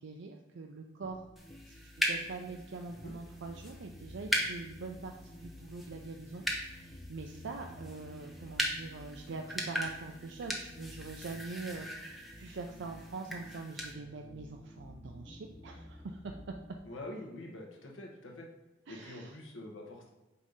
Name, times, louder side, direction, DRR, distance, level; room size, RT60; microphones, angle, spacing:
voice 1, 0.0-1.3 1.7-16.4 18.9-19.4, right 3 dB, 65° right, 3 dB, 0.5 m, -44 dB
sound 1, 1.0-16.8, left 1 dB, 25° left, 0.5 m, -52 dB
sound 2, 1.4-13.9, equal, ahead, 0.8 m, -39 dB
voice 2, 16.8-18.5 18.9-20.1, left 1 dB, 80° left, 0 dB, 1.1 m, -45 dB
8.3 x 2.8 x 5.0 m, 1.1 s
head